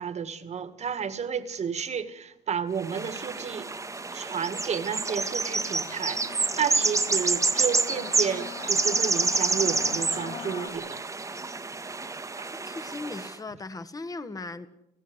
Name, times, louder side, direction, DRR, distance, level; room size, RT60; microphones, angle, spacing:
voice 1, 0.0-3.7 4.1-11.0 12.4-12.5, right 7 dB, 40° right, 1.9 m, -32 dB
sound 1, 2.8-13.3, right 3 dB, 20° right, 1.4 m, -28 dB
Singing / Musical instrument, 3.6-10.7, left 6 dB, 90° left, 6.5 m, -43 dB
voice 2, 12.5-14.7, left 3 dB, 20° left, 1.5 m, -38 dB
29.5 x 15.5 x 8.1 m
cardioid pair, 110°, 17 cm